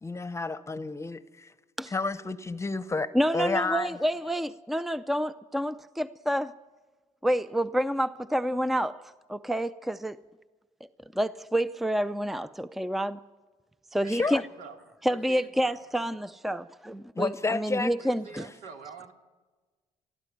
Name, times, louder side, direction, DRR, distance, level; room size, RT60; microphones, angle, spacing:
voice 1, 0.0-1.5 1.9-3.9 14.1-14.4 17.1-17.9, left 3 dB, 20° left, 0.9 m, -30 dB
voice 2, 3.1-6.5 7.2-9.0 9.3-10.2 11.1-13.2 13.9-14.4 15.0-18.5, equal, ahead, 0.5 m, -28 dB
voice 3, 14.0-14.8 15.1-15.8 18.0-19.1, right 5 dB, 80° right, 2.6 m, -46 dB
20.0 x 13.5 x 9.8 m
cardioid pair, 90°, 13 cm